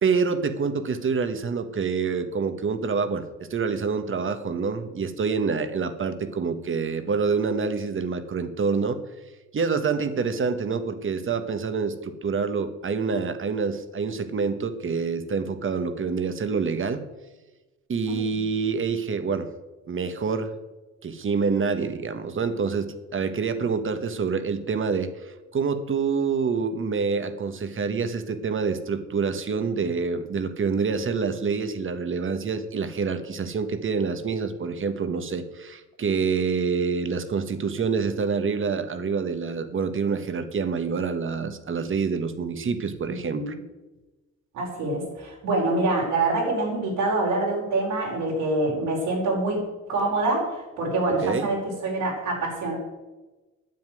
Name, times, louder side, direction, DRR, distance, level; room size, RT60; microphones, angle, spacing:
voice 1, 0.0-9.0 9.5-17.0 17.9-19.5 19.9-20.5 21.0-43.5 51.2-51.5, right 5 dB, 45° right, 10 dB, 1.4 m, -27 dB
voice 2, 18.1-18.4 43.1-43.5 44.5-49.6 49.9-52.8, right 2 dB, 85° right, -2 dB, 5.2 m, -26 dB
9.6 x 7.2 x 9.2 m, 1.1 s
cardioid pair, 90°, 30 cm